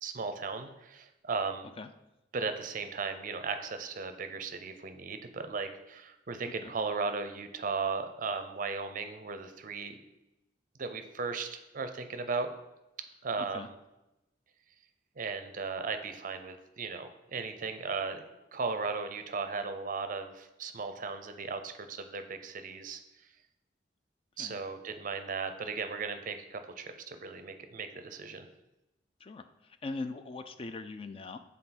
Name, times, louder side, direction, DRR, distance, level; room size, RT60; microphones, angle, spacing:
voice 1, 0.0-1.7 2.3-10.0 10.8-12.5 13.2-13.7 15.2-18.2 18.5-23.0 24.4-28.5, right 4 dB, 45° right, 8 dB, 0.5 m, -36 dB
voice 2, 29.2-31.4, left 3 dB, 30° left, 10 dB, 0.3 m, -41 dB
6.7 x 3.6 x 4.1 m, 0.94 s
head